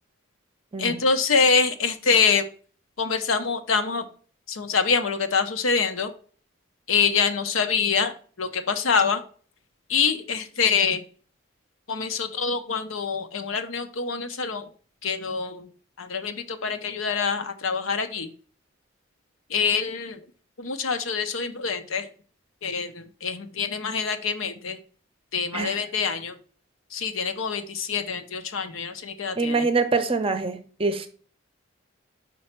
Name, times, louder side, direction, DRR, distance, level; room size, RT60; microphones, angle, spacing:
voice 1, 0.8-2.5 3.0-4.1 4.5-6.1 6.9-9.2 9.9-11.0 11.9-14.7 15.0-15.7 16.0-18.3 19.5-20.2 20.6-22.1 22.6-24.8 25.3-26.4 26.9-29.7, left 5 dB, 80° left, 8 dB, 0.8 m, -25 dB
voice 2, 29.4-31.1, right 3 dB, 25° right, 9 dB, 0.6 m, -25 dB
5.4 x 4.3 x 4.3 m, 0.42 s
head